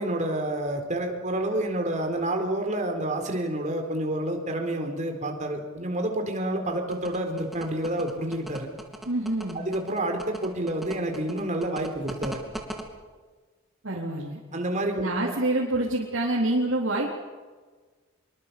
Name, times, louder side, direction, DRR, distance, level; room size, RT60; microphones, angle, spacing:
voice 1, 0.0-8.7 9.5-12.4 14.5-15.1, right 1 dB, 40° right, 4 dB, 4.1 m, -29 dB
sound 1, 6.9-12.8, right 1 dB, ahead, 2.8 m, -38 dB
voice 2, 9.1-9.6 13.8-14.4 14.9-17.1, right 1 dB, 70° right, -4 dB, 4.0 m, -26 dB
26.0 x 23.0 x 7.0 m, 1.4 s
head